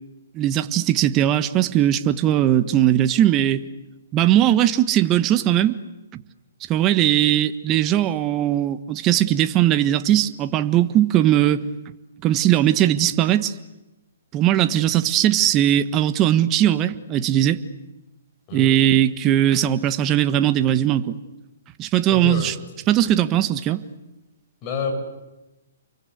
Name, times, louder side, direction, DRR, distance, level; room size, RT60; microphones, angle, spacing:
voice 1, 0.3-3.6 4.1-5.8 6.1-6.2 6.7-11.6 12.2-13.5 14.3-17.6 18.5-21.2 21.8-22.5 22.9-23.8, right 12 dB, 25° right, 11 dB, 1.4 m, -19 dB
voice 2, 22.1-22.5 24.6-24.9, left 5 dB, 30° left, 4 dB, 7.5 m, -28 dB
30.0 x 23.5 x 8.1 m, 1.0 s
hypercardioid pair, 140°, 0 cm